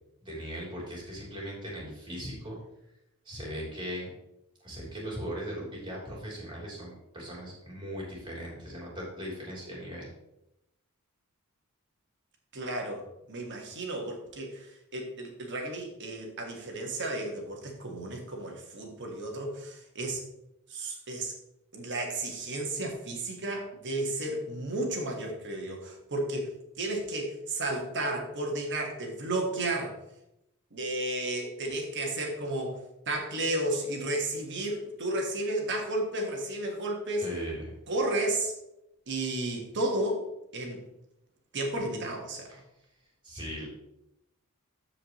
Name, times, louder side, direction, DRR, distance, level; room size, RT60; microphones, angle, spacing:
voice 1, 0.2-2.6 3.3-4.1 4.6-10.1 37.2-37.7 42.5-42.6 43.2-43.7, equal, 20° right, -4 dB, 3.5 m, -38 dB
voice 2, 12.5-20.2 20.7-21.3 21.7-26.5 26.8-30.0 30.7-32.8 33.1-37.3 37.9-38.5 39.1-40.2 40.5-40.8 41.5-42.5, right 1 dB, 55° right, 1 dB, 1.8 m, -33 dB
13.5 x 5.0 x 3.1 m, 0.87 s
head